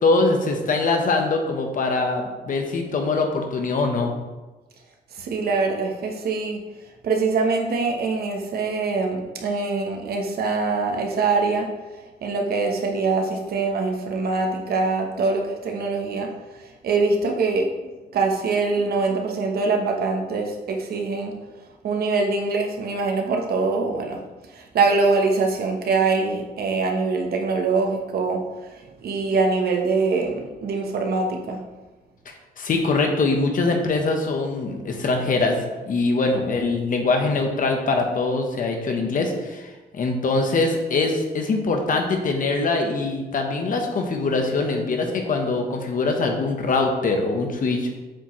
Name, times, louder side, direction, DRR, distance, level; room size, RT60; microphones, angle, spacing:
voice 1, 0.0-4.1 32.3-35.6 35.8-47.9, left 3 dB, 55° left, 3 dB, 1.1 m, -23 dB
voice 2, 5.1-6.6 7.0-11.7 12.2-17.7 18.1-21.4 21.8-24.2 24.5-31.6, right 3 dB, 75° right, 2 dB, 1.0 m, -23 dB
7.6 x 4.9 x 3.1 m, 1.2 s
wide cardioid pair, 130°, 16 cm